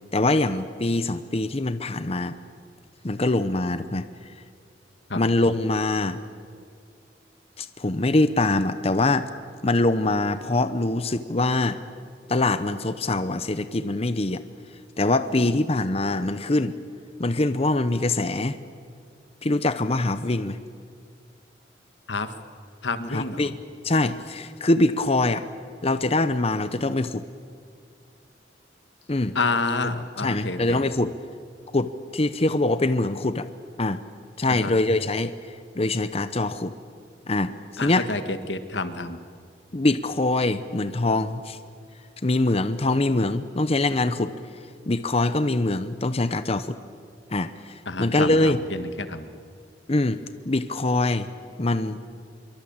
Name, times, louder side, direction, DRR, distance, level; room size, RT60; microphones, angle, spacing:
voice 1, 0.1-2.4 3.0-4.1 5.1-6.2 7.6-9.3 9.6-11.8 12.3-14.4 15.0-16.7 17.2-18.6 19.4-20.6 23.1-23.6 23.8-25.4 25.8-27.2 29.1-29.4 30.2-31.1 31.7-33.5 33.8-34.0 34.4-35.3 35.7-36.7 37.3-38.1 39.7-41.6 42.2-44.3 44.9-46.8 47.3-48.6 49.9-50.2 50.5-51.3 51.6-52.0, left 2 dB, 35° left, 12 dB, 0.9 m, -23 dB
voice 2, 22.8-23.5 29.4-30.8 34.5-34.7 37.8-39.2 47.9-49.3, left 3 dB, 90° left, 10 dB, 1.7 m, -29 dB
25.0 x 23.5 x 8.8 m, 2.2 s
head